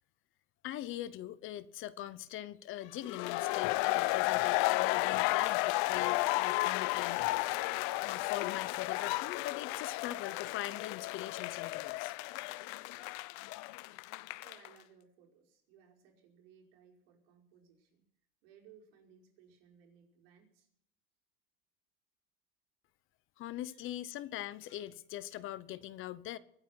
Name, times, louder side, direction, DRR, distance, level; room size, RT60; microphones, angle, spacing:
voice 1, 0.6-7.6 8.0-12.1 23.4-26.4, left 13 dB, 45° left, 0.9 m, -42 dB
sound 1, 3.0-14.7, left 20 dB, 70° left, 0.7 m, -33 dB
voice 2, 14.4-18.1 18.4-20.7 23.7-23.9, right 7 dB, 85° right, 5.4 m, -62 dB
24.0 x 8.6 x 5.9 m
cardioid pair, 150°, 29 cm